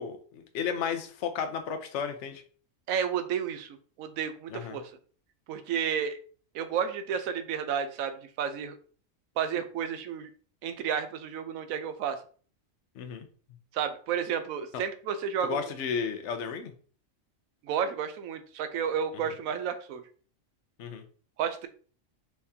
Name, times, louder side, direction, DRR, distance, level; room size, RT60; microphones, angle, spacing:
voice 1, 0.0-2.4 4.5-4.8 13.0-13.3 14.7-14.8 15.4-16.7 20.8-21.0, left 6 dB, 65° left, 7 dB, 1.0 m, -33 dB
voice 2, 2.9-4.9 5.5-6.2 6.5-8.8 9.4-10.3 10.6-12.2 13.7-15.7 17.6-20.0 21.4-21.7, right 8 dB, 85° right, 9 dB, 1.1 m, -31 dB
4.6 x 3.5 x 2.8 m, 0.42 s
omnidirectional pair, 1.4 m